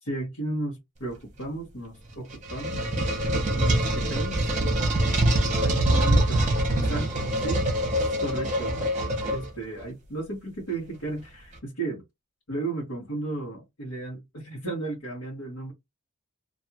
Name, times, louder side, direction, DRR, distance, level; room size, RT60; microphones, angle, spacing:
voice 1, 0.0-2.8 3.5-4.9 5.6-6.5 6.8-7.6 8.0-8.9 9.3-12.0 12.5-15.7, right 2 dB, 75° left, 1.2 m, -34 dB
sound 1, 2.1-9.8, right 1 dB, 35° right, 0.8 m, -24 dB
2.6 x 2.4 x 2.7 m
head